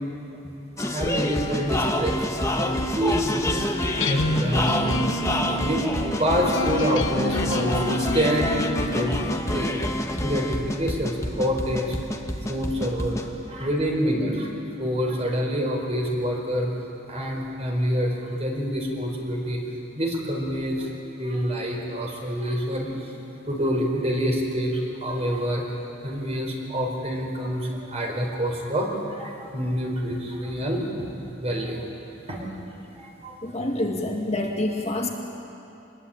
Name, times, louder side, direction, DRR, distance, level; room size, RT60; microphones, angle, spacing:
sound 1, 0.8-13.3, left 1 dB, 15° left, 1.4 m, -27 dB
voice 1, 0.8-2.2 2.5-3.7 4.1-5.2 5.6-9.7 10.2-12.2 12.5-13.2 13.5-14.5 14.8-16.7 17.1-19.6 19.9-20.9 21.2-25.7 26.0-31.1 31.4-31.9 32.3-33.5, equal, 30° right, 0 dB, 4.4 m, -27 dB
sound 2, 3.9-9.9, left 2 dB, 65° left, 1.1 m, -30 dB
voice 2, 33.4-35.1, left 1 dB, 30° left, 0 dB, 1.9 m, -27 dB
25.5 x 21.0 x 8.8 m, 2.9 s
head